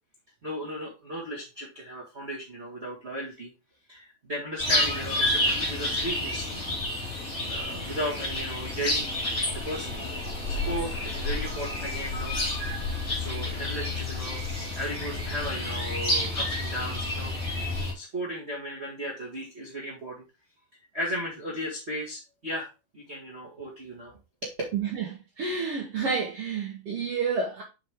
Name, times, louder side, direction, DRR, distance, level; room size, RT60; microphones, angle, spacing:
voice 1, 0.4-3.5 3.9-6.5 7.4-9.1 9.5-10.0 10.5-12.3 12.8-17.3 17.9-20.2 20.9-22.7 22.9-24.1 24.4-24.5, equal, 45° right, 0.8 m, -35 dB
sound 1, 4.6-17.9, left 1 dB, 25° left, 2.2 m, -30 dB
voice 2, 24.7-25.0 25.4-27.6, right 5 dB, 70° right, 1.4 m, -29 dB
7.5 x 4.9 x 3.6 m
omnidirectional pair, 4.4 m